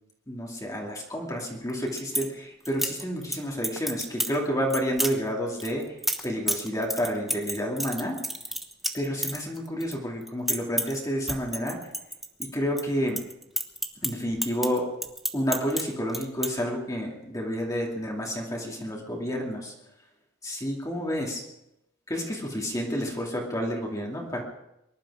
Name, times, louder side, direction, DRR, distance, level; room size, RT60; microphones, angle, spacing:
voice 1, 0.3-5.9 6.2-8.2 8.9-11.9 12.5-13.2 14.0-14.9 15.3-19.7 20.4-21.4 22.1-24.4, equal, 20° left, -1 dB, 2.6 m, -30 dB
sound 1, 1.7-2.3 2.7-3.4 3.6-4.4 4.7-5.1 5.6-9.9 10.2-11.0 11.3-12.8 13.1-15.8 16.1-16.5, equal, ahead, 1.1 m, -30 dB
23.5 x 11.5 x 4.9 m, 0.86 s
head